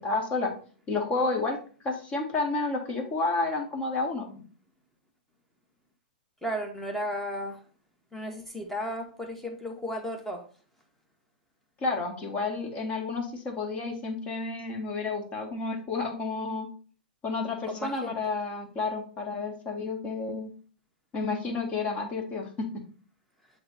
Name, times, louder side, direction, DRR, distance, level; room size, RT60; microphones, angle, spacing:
voice 1, 0.0-0.5 0.9-1.6 1.8-4.4 11.8-16.7 17.2-20.5 21.1-22.5, left 3 dB, 25° left, 2 dB, 1.8 m, -30 dB
voice 2, 6.4-7.6 8.1-10.4 17.7-18.2, equal, 5° left, 2 dB, 1.3 m, -34 dB
7.7 x 3.4 x 4.2 m, 0.40 s
hypercardioid pair, 130°, 5 cm